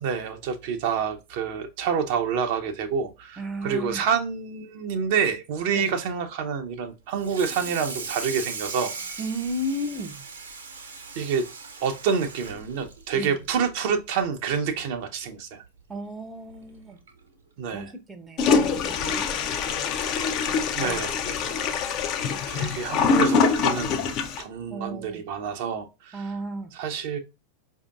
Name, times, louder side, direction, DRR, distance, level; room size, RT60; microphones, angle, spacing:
voice 1, 0.0-8.9 11.2-11.5 11.8-15.6 17.6-17.9 20.8-21.6 22.5-24.1 24.4-26.3 26.7-27.2, right 6 dB, 50° right, 0.6 m, -28 dB
voice 2, 3.4-4.0 5.7-5.9 9.2-10.2 13.1-13.4 15.9-17.0 17.7-20.0 20.5-21.0 24.7-25.2 26.1-26.7, equal, 10° right, 0.6 m, -34 dB
Water tap faucet / Sink (filling or washing), 7.1-13.8 14.2-14.4 14.8-14.9 15.3-15.4 16.5-16.6 17.1-17.3, right 4 dB, 70° right, 0.9 m, -38 dB
Toilet flush, 18.4-24.4, left 5 dB, 40° left, 0.5 m, -24 dB
4.9 x 2.7 x 2.3 m
figure-of-eight pair, 90°, 0 cm